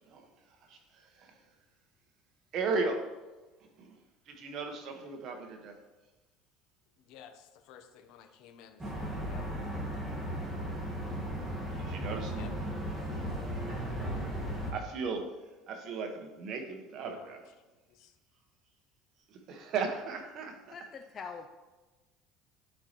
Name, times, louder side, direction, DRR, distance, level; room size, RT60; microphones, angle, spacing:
voice 1, 0.7-1.4 2.5-3.1 3.8-4.0 4.3-5.8 11.8-12.4 14.7-15.3 15.7-17.5 19.3-20.6, right 4 dB, 50° right, 4 dB, 1.2 m, -36 dB
voice 2, 7.1-8.8 9.3-9.5 12.4-12.5 17.1-17.3 17.9-18.1, left 8 dB, 65° left, 6 dB, 0.8 m, -53 dB
sound 1, 8.8-14.7, equal, 15° right, 1.5 m, -36 dB
voice 3, 20.7-21.5, left 5 dB, 35° left, 5 dB, 0.5 m, -43 dB
11.5 x 4.4 x 3.0 m, 1.2 s
supercardioid pair, 115°, 0 cm